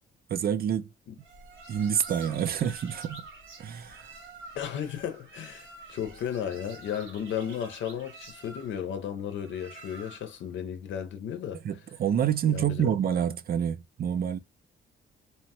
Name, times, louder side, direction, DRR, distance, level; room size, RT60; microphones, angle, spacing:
voice 1, 0.3-0.9 1.7-3.3 3.6-4.0 11.6-14.4, right 9 dB, 50° right, 0.4 m, -27 dB
sound 1, 1.2-10.4, right 3 dB, 80° right, 1.2 m, -48 dB
voice 2, 4.5-11.6 12.5-12.9, left 9 dB, 70° left, 0.7 m, -34 dB
2.9 x 2.2 x 2.8 m
cardioid pair, 90°, 20 cm